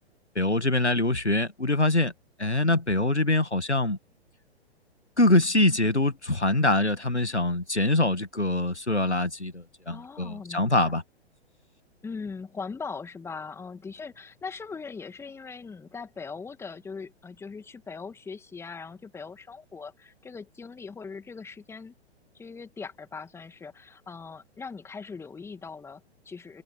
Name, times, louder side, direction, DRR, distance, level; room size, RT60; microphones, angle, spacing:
voice 1, 0.4-2.1 2.4-4.0 5.2-11.0, left 2 dB, 90° left, 2.0 m, -24 dB
voice 2, 9.9-11.0 12.0-21.9 22.3-26.6, left 5 dB, 10° left, 2.2 m, -40 dB
figure-of-eight pair, 115°, 33 cm